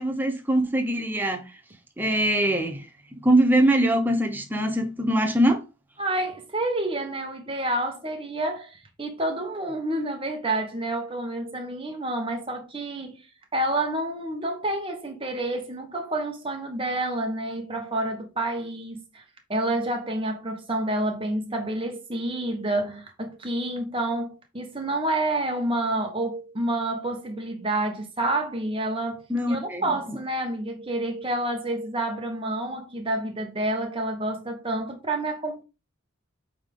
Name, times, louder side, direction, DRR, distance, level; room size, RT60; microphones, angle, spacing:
voice 1, 0.0-1.4 2.0-2.9 3.1-5.6 29.3-29.9, right 1 dB, 10° right, 0.8 m, -22 dB
voice 2, 6.0-13.2 13.5-19.2 19.5-35.6, right 1 dB, 25° right, 1.5 m, -29 dB
8.6 x 3.7 x 3.8 m
head